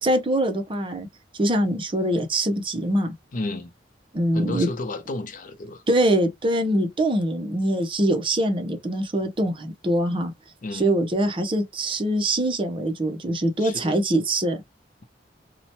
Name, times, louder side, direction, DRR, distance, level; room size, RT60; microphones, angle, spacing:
voice 1, 0.0-1.1 1.4-3.1 4.1-4.7 5.9-10.3 10.7-14.6, right 1 dB, 30° right, 0.6 m, -23 dB
voice 2, 3.3-3.7 4.3-5.8 10.6-11.0 13.6-14.0, left 2 dB, 45° left, 0.5 m, -32 dB
2.8 x 2.1 x 2.7 m
head